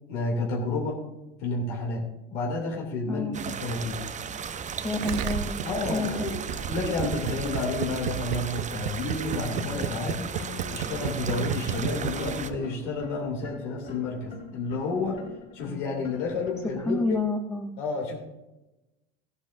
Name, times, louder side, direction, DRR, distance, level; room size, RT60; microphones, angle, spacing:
voice 1, 0.1-1.0 1.4-4.0 5.6-6.4 6.7-10.3 10.7-15.2 15.5-17.2 17.8-18.2, left 3 dB, 80° left, -1 dB, 2.8 m, -30 dB
voice 2, 3.1-3.5 4.8-5.6 5.9-6.3 16.9-17.7, left 2 dB, 10° left, 3 dB, 0.8 m, -29 dB
sound 1, 3.3-12.5, right 7 dB, 20° right, 0.5 m, -35 dB
Gurgling, 5.0-12.9, right 12 dB, 60° right, 0.7 m, -32 dB
sound 2, 9.3-17.2, left 6 dB, 35° left, 3.1 m, -43 dB
14.5 x 11.5 x 2.6 m, 0.99 s
supercardioid pair, 100°, 35 cm